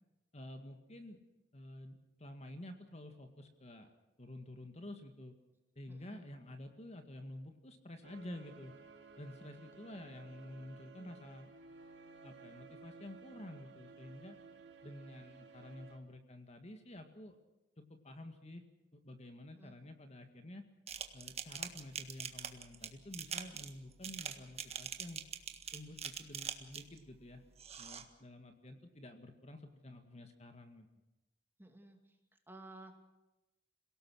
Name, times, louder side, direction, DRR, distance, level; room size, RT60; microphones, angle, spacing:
voice 1, 0.3-1.2 1.5-3.9 4.2-5.4 5.8-8.8 9.2-11.5 12.2-14.4 14.8-17.4 17.8-18.6 18.9-20.7 21.1-25.2 25.7-27.4 27.8-30.9, left 1 dB, 35° left, 7 dB, 1.9 m, -50 dB
voice 2, 5.9-6.2 19.6-19.8 31.6-32.0 32.5-33.0, right 2 dB, 10° right, 4 dB, 2.5 m, -53 dB
sound 1, 8.0-16.0, right 4 dB, 65° right, 3.4 m, -56 dB
sound 2, 20.9-27.0 27.6-28.0, right 7 dB, 35° right, 1.6 m, -43 dB
27.5 x 18.0 x 6.4 m, 0.98 s
head